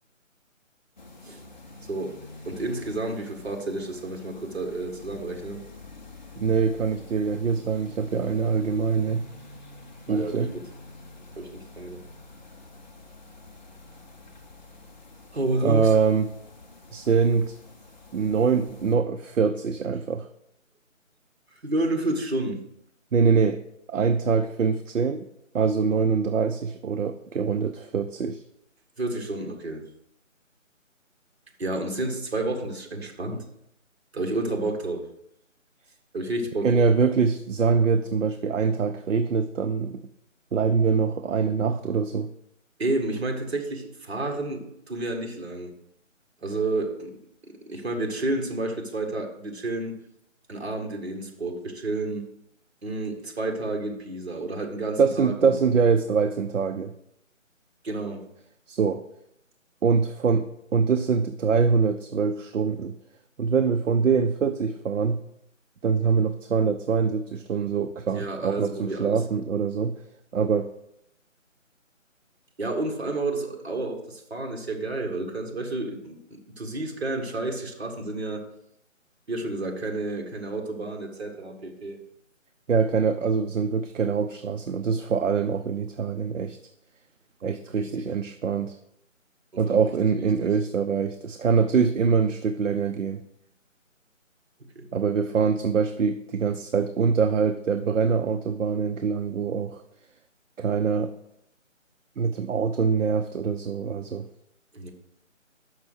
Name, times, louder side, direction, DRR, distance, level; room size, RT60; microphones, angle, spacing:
sound 1, 1.0-19.0, left 2 dB, 35° left, 0.8 m, -47 dB
voice 1, 1.9-2.2 2.4-5.6 10.1-10.6 11.4-12.0 15.3-15.9 21.6-22.6 29.0-29.9 31.6-33.4 34.1-35.1 36.1-36.9 42.8-45.7 46.4-47.2 47.4-49.9 50.5-52.3 52.8-55.5 57.8-58.3 68.1-69.2 72.6-78.4 79.3-82.0 87.7-87.9 89.7-89.8 90.1-90.3 94.7-94.9 104.7-104.9, right 2 dB, 50° right, 2 dB, 1.6 m, -30 dB
voice 2, 6.4-9.2 10.1-10.5 15.6-16.3 16.9-17.5 18.1-20.3 23.1-23.6 23.9-25.3 25.5-28.4 36.6-40.0 40.5-42.3 55.0-56.9 58.7-59.0 59.8-62.9 63.4-65.2 65.8-70.0 70.3-70.7 82.7-86.6 87.4-88.8 89.6-93.2 94.9-99.8 100.6-101.1 102.2-104.3, right 5 dB, 70° right, 9 dB, 0.6 m, -24 dB
6.3 x 6.0 x 6.2 m, 0.77 s
figure-of-eight pair, 165°, 39 cm